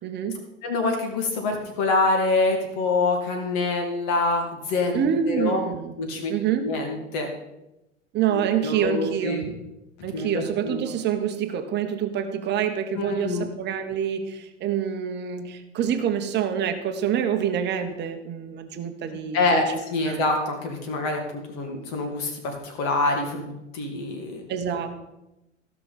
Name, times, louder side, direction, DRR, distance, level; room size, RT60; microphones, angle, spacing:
voice 1, 0.0-0.5 4.9-6.0 6.3-6.8 8.1-9.5 10.0-19.8 20.0-20.3 24.5-25.0, right 8 dB, 25° right, 7 dB, 1.2 m, -27 dB
voice 2, 0.6-5.6 6.0-6.3 6.6-7.3 8.6-9.4 10.1-10.8 12.9-13.5 19.3-24.4, left 3 dB, 45° left, 3 dB, 2.4 m, -26 dB
15.5 x 6.2 x 4.2 m, 0.93 s
figure-of-eight pair, 85°, 38 cm